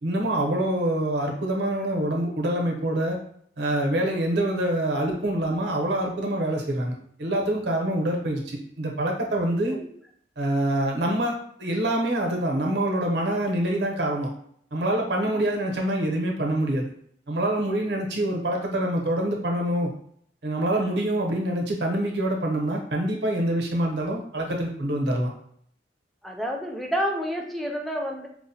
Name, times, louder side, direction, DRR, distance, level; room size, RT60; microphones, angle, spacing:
voice 1, 0.0-3.2 3.6-9.8 10.4-14.3 14.7-16.9 17.3-19.9 20.4-25.3, right 1 dB, 70° right, 0 dB, 0.8 m, -25 dB
voice 2, 9.5-9.9 20.8-21.0 26.2-28.3, equal, ahead, 0 dB, 0.4 m, -29 dB
4.7 x 2.1 x 2.7 m, 0.65 s
head